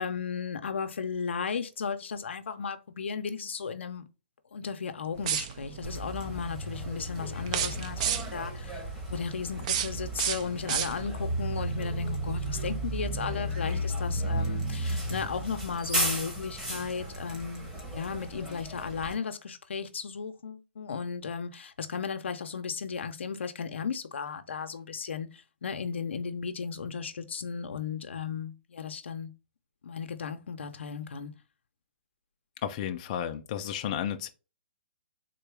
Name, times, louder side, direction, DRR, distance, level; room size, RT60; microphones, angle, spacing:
voice 1, 0.0-4.0 4.5-8.8 9.1-29.3 29.8-31.3, left 6 dB, 90° left, 0.6 m, -35 dB
sound 1, 5.2-5.8 7.4-8.5 9.4-11.3, right 9 dB, 35° right, 0.4 m, -32 dB
Bus, 5.8-19.1, right 1 dB, 10° right, 0.9 m, -34 dB
voice 2, 32.6-34.3, left 9 dB, 35° left, 0.4 m, -32 dB
3.7 x 2.3 x 3.3 m
hypercardioid pair, 155°, 6 cm